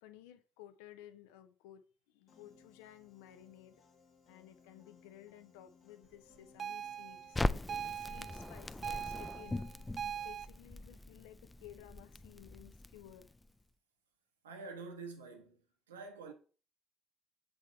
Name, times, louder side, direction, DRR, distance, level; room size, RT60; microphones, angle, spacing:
voice 1, 0.0-3.8 4.3-9.7 10.2-13.3, left 12 dB, 70° left, 0.5 m, -56 dB
Piano, 2.3-10.3, left 5 dB, 50° left, 1.4 m, -65 dB
sound 1, 6.6-10.5, right 8 dB, 45° right, 0.5 m, -42 dB
Crackle, 7.3-13.5, left 2 dB, 15° left, 0.3 m, -40 dB
voice 2, 14.4-15.6 15.9-16.3, right 4 dB, 80° right, 0.8 m, -47 dB
7.4 x 3.5 x 4.4 m
figure-of-eight pair, 50°, 0 cm